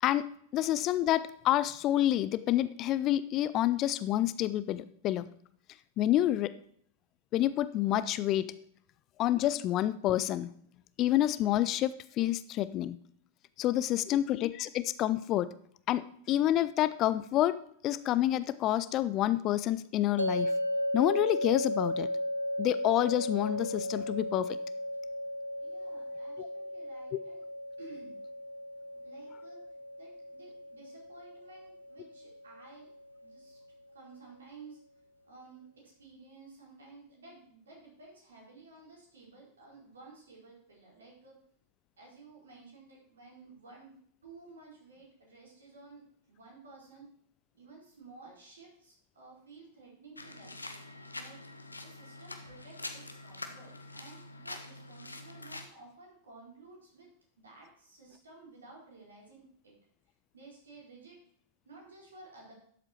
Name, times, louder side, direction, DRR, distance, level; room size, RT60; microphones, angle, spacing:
voice 1, 0.0-5.3 6.0-6.5 7.3-8.5 9.2-10.5 11.0-13.0 13.6-15.5 15.9-20.5 20.9-22.1 22.6-24.6 26.4-26.5, left 13 dB, 35° left, 15 dB, 0.5 m, -28 dB
voice 2, 13.8-14.2 25.6-27.4 27.8-28.2 29.0-29.6 30.0-32.9 33.2-33.6 33.9-34.8 35.3-41.4 42.0-43.9 44.2-47.1 47.5-50.5 51.1-51.4 51.8-57.1 57.4-59.7 60.3-61.2 61.6-62.5, right 3 dB, 70° right, -2 dB, 4.5 m, -54 dB
sound 1, 20.2-33.3, left 1 dB, 85° right, 0.6 m, -36 dB
sound 2, 50.2-55.7, left 2 dB, 80° left, 1.0 m, -45 dB
12.0 x 7.7 x 4.4 m, 0.63 s
figure-of-eight pair, 90°, 0 cm